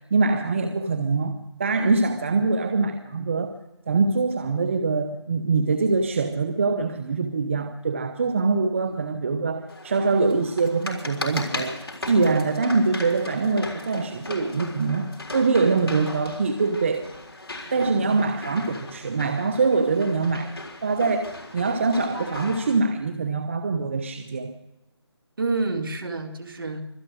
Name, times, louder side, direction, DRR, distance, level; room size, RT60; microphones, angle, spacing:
voice 1, 0.1-3.6 3.9-11.8 12.1-17.1 17.7-20.5 20.8-24.5, right 4 dB, 25° right, 8 dB, 0.8 m, -24 dB
sound 1, 9.7-22.8, left 2 dB, 60° left, 3.9 m, -37 dB
voice 2, 17.7-18.2 25.4-26.8, right 3 dB, 50° right, 6 dB, 2.3 m, -29 dB
25.0 x 9.0 x 6.2 m, 0.96 s
figure-of-eight pair, 165°, 15 cm